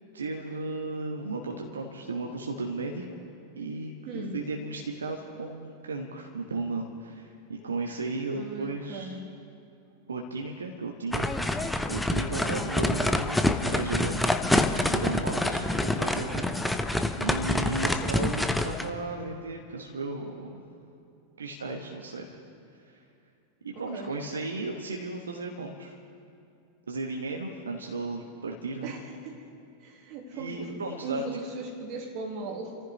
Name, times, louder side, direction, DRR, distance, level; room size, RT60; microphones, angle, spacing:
voice 1, 0.1-3.0 3.6-9.2 10.1-11.5 11.9-16.9 17.2-20.6 21.4-22.4 22.9-23.0 23.6-26.0 26.9-28.9 30.3-31.4, right 3 dB, 70° right, 1 dB, 1.3 m, -35 dB
voice 2, 4.1-4.4 7.6-7.7 8.3-9.2 17.8-18.2 23.7-24.2 28.8-29.5 29.8-32.8, right 3 dB, 40° right, 3 dB, 2.4 m, -39 dB
sound 1, 11.1-18.9, left 1 dB, 5° left, 0.8 m, -27 dB
29.5 x 14.5 x 3.2 m, 2.5 s
figure-of-eight pair, 90°, 0 cm